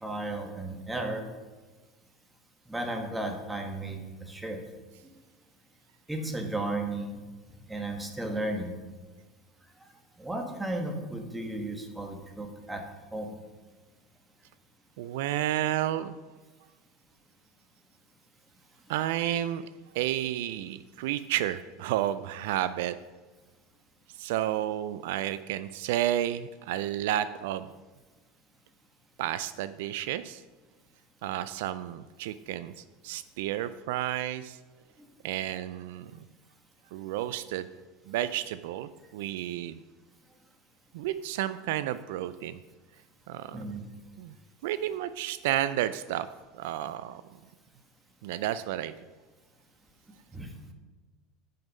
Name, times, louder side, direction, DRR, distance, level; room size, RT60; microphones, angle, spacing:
voice 1, 0.0-1.2 2.7-4.6 6.1-7.2 7.7-8.7 10.2-12.8 13.1-13.3 43.5-43.8 50.3-50.5, right 2 dB, 10° right, 3 dB, 1.5 m, -34 dB
voice 2, 15.0-16.2 18.9-19.7 19.9-23.0 24.2-27.7 29.2-30.4 31.2-34.6 35.2-36.1 36.9-37.7 38.1-39.8 40.9-42.6 43.3-43.6 44.2-44.3 44.6-46.3 46.6-47.2 48.2-48.9, right 12 dB, 75° right, 14 dB, 0.3 m, -31 dB
9.2 x 5.4 x 5.4 m, 1.3 s
supercardioid pair, 105°, 0 cm